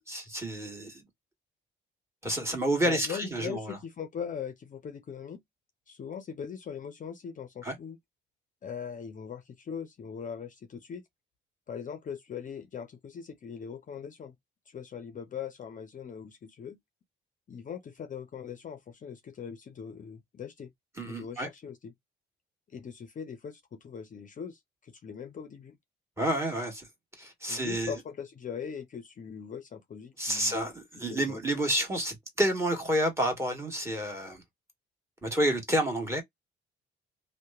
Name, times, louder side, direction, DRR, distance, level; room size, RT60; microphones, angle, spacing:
voice 1, 0.1-1.0 2.2-3.8 7.6-7.7 21.0-21.5 26.2-26.9 27.2-28.0 30.2-34.4 35.2-36.2, right 1 dB, 15° right, 1.4 m, -29 dB
voice 2, 2.8-5.4 5.9-8.0 8.6-11.0 11.7-14.3 14.7-16.8 17.5-20.7 21.0-21.9 22.7-25.8 27.5-30.7 31.1-31.4, left 7 dB, 40° left, 0.5 m, -40 dB
2.8 x 2.1 x 2.3 m
cardioid pair, 90°, 20 cm